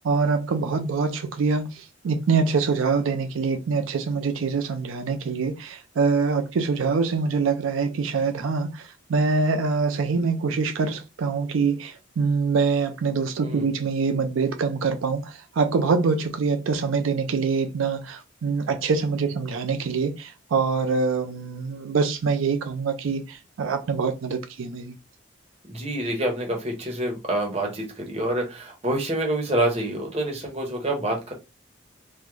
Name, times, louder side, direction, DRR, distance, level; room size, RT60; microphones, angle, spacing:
voice 1, 0.0-1.7 2.0-8.8 9.1-15.2 15.6-24.9, right 4 dB, 80° right, 0.4 m, -24 dB
voice 2, 13.4-13.7 25.7-31.3, right 1 dB, 30° right, 0.9 m, -27 dB
3.6 x 2.0 x 3.1 m
head